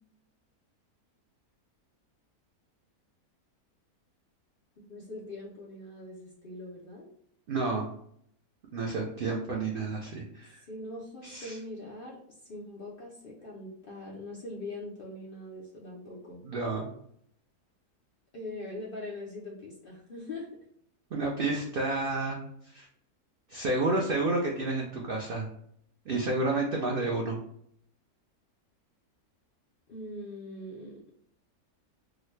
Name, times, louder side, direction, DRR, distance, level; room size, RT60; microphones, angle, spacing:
voice 1, 4.8-7.1 10.6-16.4 18.3-20.5 29.9-31.0, left 2 dB, 60° left, -4 dB, 0.5 m, -42 dB
voice 2, 7.5-7.9 8.7-10.6 11.2-11.6 16.4-16.9 21.1-22.4 22.7-22.9 23.5-25.5 26.1-27.4, right 2 dB, 85° right, -1 dB, 0.4 m, -30 dB
3.6 x 2.1 x 3.1 m, 0.68 s
omnidirectional pair, 1.6 m